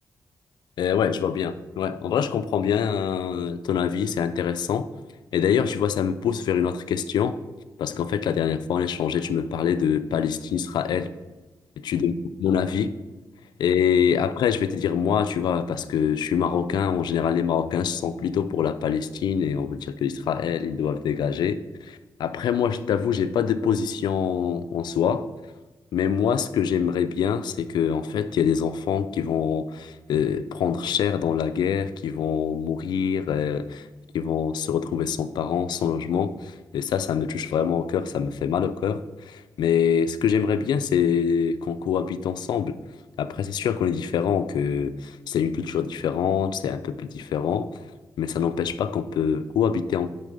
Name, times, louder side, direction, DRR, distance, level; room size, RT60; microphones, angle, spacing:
voice 1, 0.8-4.9 5.3-7.4 7.8-11.1 11.8-12.1 12.4-12.9 13.6-25.3 25.9-33.9 34.1-42.8 43.2-47.7 48.2-50.1, left 7 dB, 90° left, 12 dB, 0.4 m, -25 dB
8.3 x 3.8 x 5.4 m, 1.2 s
cardioid pair, 85°, 7 cm